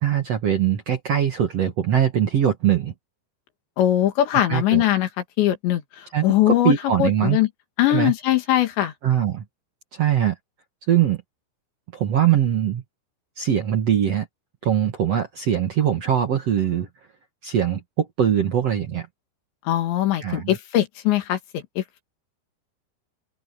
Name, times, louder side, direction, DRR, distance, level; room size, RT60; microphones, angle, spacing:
voice 1, 0.0-2.9 4.5-4.8 6.1-7.4 7.9-8.1 9.0-9.4 9.9-10.4 10.9-11.2 11.9-12.8 13.4-14.3 14.6-16.9 17.4-19.1 20.2-20.6, right 9 dB, 55° right, 1.8 m, -22 dB
voice 2, 3.8-5.1 5.4-6.7 7.0-7.5 7.8-8.9 19.7-22.0, left 13 dB, 85° left, 4.3 m, -21 dB
open air
omnidirectional pair, 5.0 m